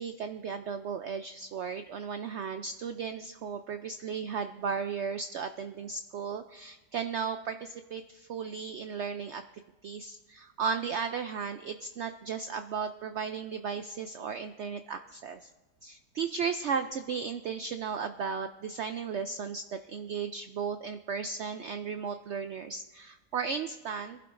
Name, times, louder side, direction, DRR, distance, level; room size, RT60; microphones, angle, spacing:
voice 1, 0.0-9.4 9.8-15.5 15.8-24.2, right 6 dB, 85° right, 9 dB, 0.6 m, -35 dB
23.0 x 11.5 x 2.6 m, 1.2 s
omnidirectional pair, 1.8 m